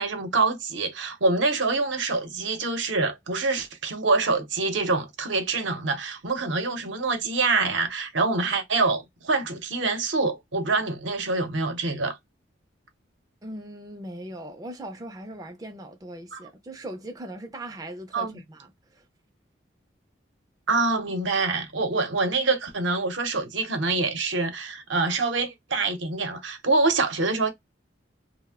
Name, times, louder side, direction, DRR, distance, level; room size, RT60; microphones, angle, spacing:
voice 1, 0.0-12.2 16.3-16.4 18.1-18.4 20.7-27.5, right 3 dB, 80° right, 0.7 m, -25 dB
voice 2, 13.4-19.0, right 1 dB, 20° right, 0.4 m, -39 dB
2.5 x 2.1 x 3.4 m
head